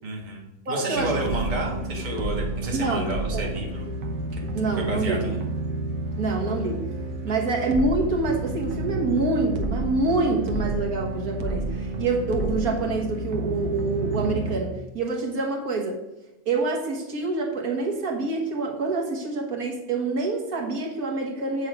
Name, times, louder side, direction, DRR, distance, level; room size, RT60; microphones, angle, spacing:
voice 1, 0.0-3.9 4.3-4.4 4.7-5.4 7.3-7.4, right 2 dB, 30° right, -1 dB, 1.5 m, -31 dB
voice 2, 0.7-1.1 2.7-3.5 4.5-5.2 6.2-6.9 7.2-16.0 16.5-21.7, right 3 dB, 70° right, 1 dB, 1.8 m, -26 dB
sound 1, 0.9-14.6, right 2 dB, 85° right, 1.5 m, -30 dB
8.1 x 6.8 x 4.8 m, 0.95 s
omnidirectional pair, 1.6 m